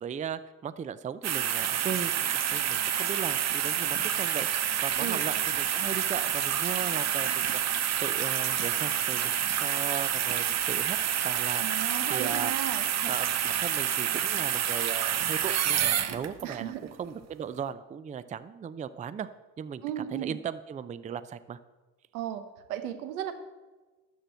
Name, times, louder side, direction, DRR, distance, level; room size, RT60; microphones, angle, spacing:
voice 1, 0.0-11.0 11.2-11.6 12.1-12.5 13.0-16.7 17.0-19.3 19.6-21.6, right 7 dB, 20° right, 14 dB, 0.4 m, -37 dB
sound 1, 1.2-16.5 17.1-17.2, right 9 dB, 40° right, 0.9 m, -28 dB
voice 2, 11.6-12.8 16.4-16.8 19.8-20.4 22.1-22.4 22.7-23.3, right 11 dB, 85° right, 9 dB, 1.1 m, -34 dB
12.5 x 4.6 x 7.8 m, 1.2 s
hypercardioid pair, 75°, 43 cm